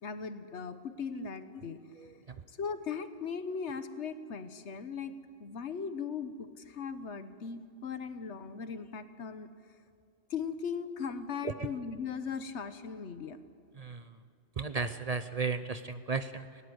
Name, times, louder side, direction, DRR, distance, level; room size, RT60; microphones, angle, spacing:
voice 1, 0.0-1.8 2.6-5.1 5.4-9.5 10.3-13.4, left 6 dB, 80° left, 11 dB, 1.3 m, -38 dB
voice 2, 2.0-2.4 11.4-11.7 13.8-14.1 14.6-16.6, right 4 dB, 40° right, 11 dB, 0.7 m, -35 dB
19.5 x 18.0 x 8.0 m, 2.3 s
omnidirectional pair, 1.2 m